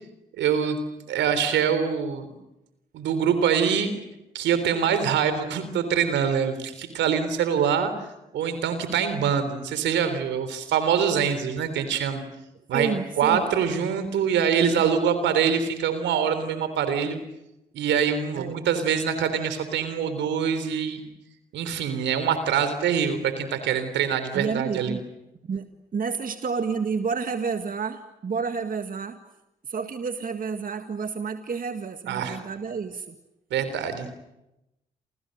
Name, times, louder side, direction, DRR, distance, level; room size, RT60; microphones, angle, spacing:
voice 1, 0.4-0.8 1.1-2.3 2.9-3.9 4.3-7.9 8.3-12.2 12.7-12.9 13.2-17.2 17.7-21.0 21.5-25.0 32.1-32.4 33.5-34.1, right 7 dB, 80° right, 11 dB, 3.6 m, -24 dB
voice 2, 12.7-13.5 18.3-18.6 24.3-25.0 25.4-29.2 29.6-33.2, right 5 dB, 50° right, 8 dB, 1.9 m, -30 dB
29.5 x 28.0 x 6.6 m, 0.90 s
hypercardioid pair, 45°, 18 cm